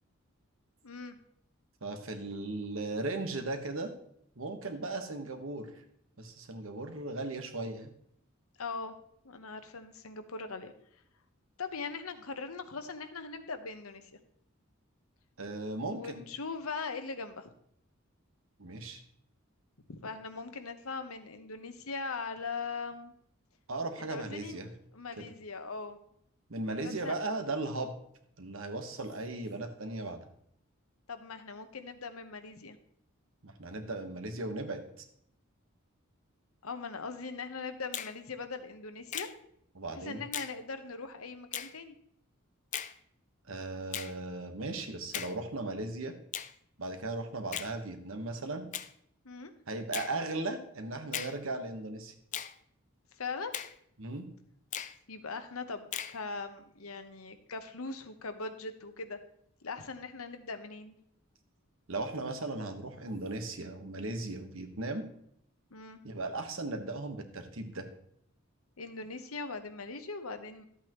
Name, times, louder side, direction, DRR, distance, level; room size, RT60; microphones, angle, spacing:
voice 1, 0.8-1.2 8.6-8.9 9.2-10.7 11.6-14.2 15.9-17.5 19.9-23.1 24.0-24.6 24.9-26.0 26.8-27.2 31.1-32.8 36.6-39.3 39.9-42.0 49.2-49.5 53.1-53.5 55.1-59.2 59.6-60.9 65.7-66.0 68.8-70.7, left 4 dB, 85° left, 9 dB, 1.0 m, -40 dB
voice 2, 1.8-3.9 4.4-5.7 6.2-7.9 15.4-16.2 18.6-19.0 23.7-24.7 25.2-25.3 26.5-28.0 28.4-30.2 33.4-35.0 39.7-40.2 43.5-46.1 46.8-48.7 49.7-52.1 54.0-54.3 61.9-65.0 66.0-67.9, right 2 dB, 70° right, 6 dB, 1.3 m, -37 dB
Finger snapping, 37.9-38.2 39.1-39.3 40.3-40.6 41.5-41.7 42.7-42.9 43.9-44.1 45.1-45.4 46.3-46.5 47.5-47.7 48.7-48.9 49.9-50.1 51.1-51.4 52.3-52.5 53.5-53.7 54.7-55.0 55.9-56.2, left 10 dB, 35° left, 0.4 m, -37 dB
12.5 x 8.4 x 3.0 m, 0.70 s
head